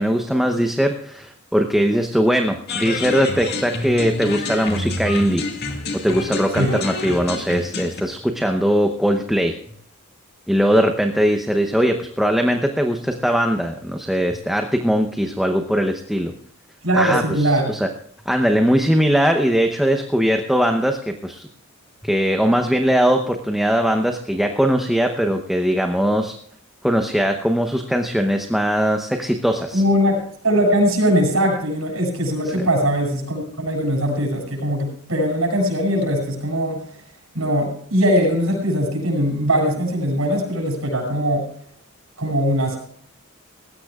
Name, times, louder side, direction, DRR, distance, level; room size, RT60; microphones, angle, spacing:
voice 1, 0.0-9.6 10.5-16.3 16.9-17.2 17.7-17.9 18.3-21.5 22.0-26.3 26.8-29.8, equal, ahead, 4 dB, 0.8 m, -20 dB
sound 1, 2.7-8.0, left 2 dB, 50° left, 2.0 m, -28 dB
voice 2, 16.8-17.7 29.7-36.8 37.3-41.5 42.2-42.8, equal, 80° right, -2 dB, 7.7 m, -20 dB
19.5 x 16.5 x 2.4 m, 0.64 s
head